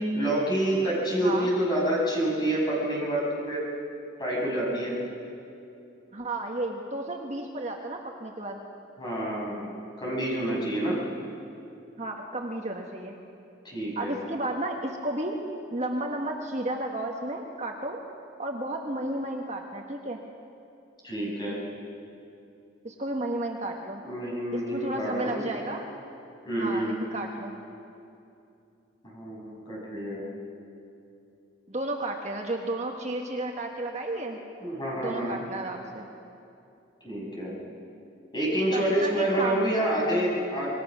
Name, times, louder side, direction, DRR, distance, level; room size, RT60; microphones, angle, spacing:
voice 1, 0.1-3.7 4.2-5.0 9.0-9.7 10.0-11.0 13.6-14.2 21.0-21.6 24.0-25.5 26.4-27.0 29.0-30.3 34.6-35.4 37.0-37.6 38.3-40.7, right 1 dB, 20° left, -4 dB, 6.3 m, -28 dB
voice 2, 6.1-8.6 12.0-13.1 13.9-15.3 15.7-18.0 18.4-20.2 22.8-24.0 24.5-25.8 26.6-27.5 31.7-34.4 35.0-36.1 38.7-39.6, right 1 dB, 35° right, 1 dB, 1.4 m, -32 dB
26.5 x 21.0 x 6.2 m, 2.7 s
head